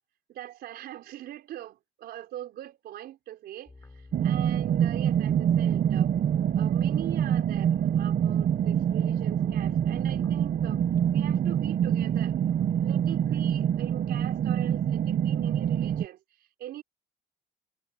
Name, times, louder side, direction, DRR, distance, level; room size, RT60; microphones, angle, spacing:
voice 1, 0.3-6.1 6.5-10.8 11.1-12.4 12.7-16.8, right 12 dB, 70° right, 4.6 m, -42 dB
sound 1, 3.7-11.4, left 3 dB, 15° left, 4.3 m, -50 dB
sound 2, 4.1-16.0, right 9 dB, 55° right, 1.4 m, -25 dB
cardioid pair, 110°, 17 cm